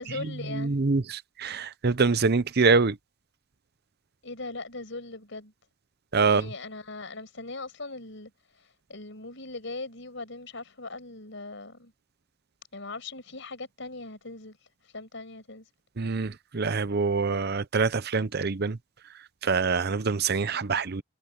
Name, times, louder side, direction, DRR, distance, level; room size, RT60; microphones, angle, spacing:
voice 1, 0.0-0.8 4.2-5.5 6.2-8.3 8.6-11.9 12.7-14.6 14.8-15.7, left 3 dB, 65° left, 6.3 m, -40 dB
voice 2, 0.5-3.0 6.1-6.5 16.0-18.8 19.4-21.0, right 4 dB, 55° right, 0.8 m, -25 dB
head